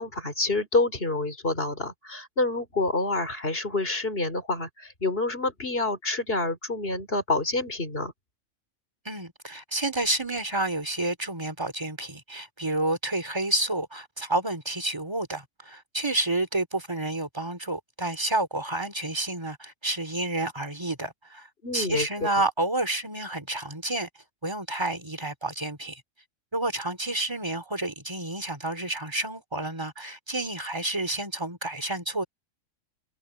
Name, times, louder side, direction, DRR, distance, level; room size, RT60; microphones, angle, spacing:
voice 1, 0.0-8.1 21.6-22.4, left 2 dB, 45° left, 4.1 m, -28 dB
voice 2, 9.0-21.5 21.7-24.1 24.4-26.0 26.5-32.2, right 2 dB, 20° right, 2.9 m, -30 dB
omnidirectional pair, 1.4 m